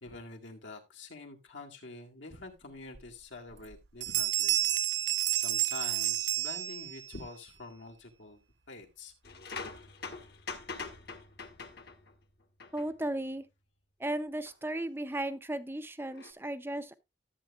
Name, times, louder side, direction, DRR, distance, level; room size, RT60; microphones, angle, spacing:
voice 1, 0.0-4.6 5.3-8.4 8.7-9.1, left 3 dB, 75° left, 2.0 m, -46 dB
Bell, 2.9-3.0 3.5-3.8 4.0-7.2, right 13 dB, 70° right, 0.7 m, -30 dB
sound 1, 9.2-12.2 12.6-12.9 14.5-14.6 16.1-16.3, left 4 dB, 55° left, 1.3 m, -43 dB
voice 2, 12.7-13.5 14.0-16.9, right 1 dB, 10° right, 0.6 m, -35 dB
13.5 x 8.2 x 2.4 m
head